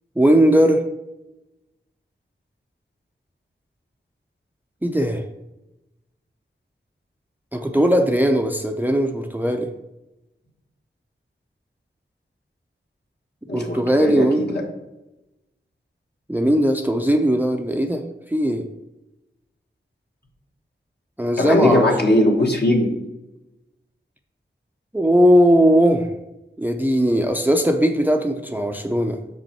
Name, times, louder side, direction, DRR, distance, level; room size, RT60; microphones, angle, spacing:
voice 1, 0.2-0.8 4.8-5.2 7.5-9.7 13.5-14.6 16.3-18.0 18.3-18.7 21.2-21.9 24.9-26.1 26.6-29.2, equal, 10° right, 5 dB, 0.5 m, -18 dB
voice 2, 13.5-14.6 21.4-22.9, left 1 dB, 55° left, 0 dB, 1.5 m, -19 dB
6.3 x 5.2 x 4.5 m, 0.96 s
wide cardioid pair, 55°, 21 cm